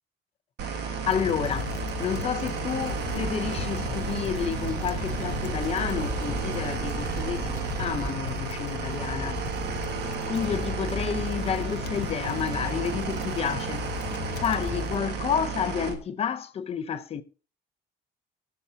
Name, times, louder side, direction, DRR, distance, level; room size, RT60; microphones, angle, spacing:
sound 1, 0.6-15.9, right 6 dB, 75° right, 1.6 m, -33 dB
voice 1, 0.7-9.4 10.3-17.2, left 7 dB, 35° left, 0.7 m, -30 dB
sound 2, 1.1-15.0, left 16 dB, 80° left, 0.5 m, -37 dB
sound 3, 2.8-8.1, right 6 dB, 20° right, 0.7 m, -35 dB
20.5 x 7.1 x 2.8 m
cardioid pair, 175°, 18 cm